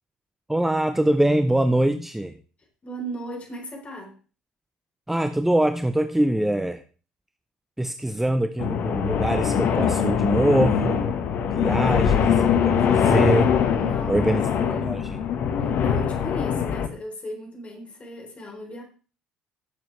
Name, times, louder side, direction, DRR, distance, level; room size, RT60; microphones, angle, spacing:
voice 1, 0.5-2.3 5.1-6.8 7.8-11.1 11.5-13.5 14.1-14.4 14.8-15.0, right 1 dB, 5° right, 8 dB, 0.8 m, -23 dB
voice 2, 2.8-4.2 13.8-15.0 15.6-18.8, equal, 35° left, 3 dB, 3.9 m, -36 dB
sound 1, 8.6-16.9, left 7 dB, 55° left, 1.3 m, -22 dB
14.5 x 7.2 x 3.3 m, 0.37 s
hypercardioid pair, 60°, 4 cm